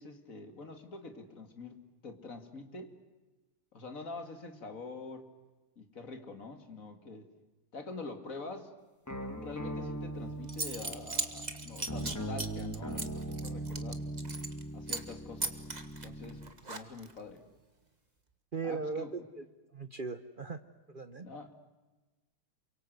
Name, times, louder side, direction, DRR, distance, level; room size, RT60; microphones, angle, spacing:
voice 1, 0.0-1.8 2.0-2.9 3.7-5.3 5.8-7.3 7.7-8.7 9.4-14.0 14.7-15.6 16.0-17.4 18.6-19.1 21.2-21.6, left 3 dB, 40° left, 6 dB, 2.6 m, -45 dB
sound 1, 9.1-16.5, right 1 dB, 10° left, 1.8 m, -40 dB
Zipper (clothing) / Coin (dropping), 10.1-10.2 10.5-14.6 14.9-15.1 15.4-17.2, right 3 dB, 20° right, 1.4 m, -38 dB
voice 2, 18.5-19.4 19.7-20.6 20.9-21.3, right 4 dB, 55° right, 10 dB, 0.5 m, -38 dB
28.5 x 24.0 x 8.0 m, 1.1 s
omnidirectional pair, 2.3 m